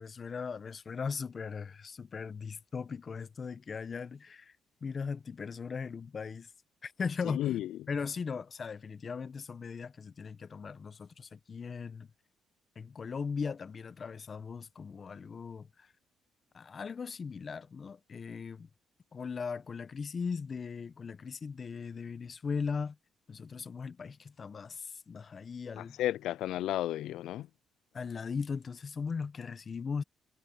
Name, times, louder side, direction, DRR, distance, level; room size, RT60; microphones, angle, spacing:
voice 1, 0.0-4.5 4.8-6.5 6.8-7.6 7.9-12.1 12.8-15.9 16.5-18.7 19.1-23.0 23.3-26.0 27.9-30.0, left 5 dB, 40° left, 0.9 m, -38 dB
voice 2, 7.2-7.7 25.8-27.5, left 13 dB, 85° left, 0.3 m, -33 dB
cardioid pair, 90°, 0 cm